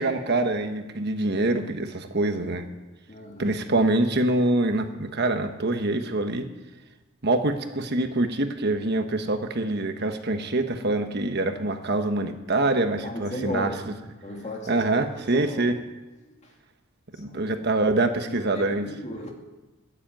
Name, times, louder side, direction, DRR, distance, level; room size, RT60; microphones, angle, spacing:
voice 1, 0.0-2.7 3.4-6.5 7.2-13.7 14.7-15.8 17.2-18.9, right 2 dB, 50° right, 6 dB, 1.2 m, -25 dB
voice 2, 3.1-3.6 13.0-13.7 14.2-15.8 16.4-16.5 17.2-17.5 18.3-19.3, left 1 dB, 35° left, 1 dB, 2.6 m, -36 dB
13.5 x 10.0 x 9.1 m, 1.1 s
head